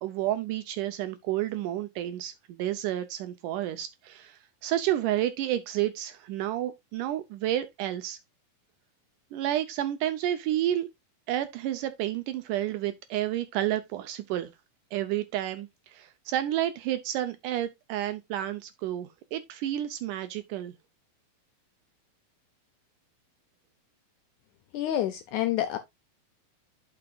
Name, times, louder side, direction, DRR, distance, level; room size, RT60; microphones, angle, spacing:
voice 1, 0.0-8.2 9.3-10.9 11.3-14.5 14.9-20.7, right 12 dB, 80° right, 2.0 m, -30 dB
voice 2, 24.7-25.8, left 12 dB, 80° left, 1.8 m, -28 dB
11.0 x 5.8 x 2.3 m
omnidirectional pair, 4.1 m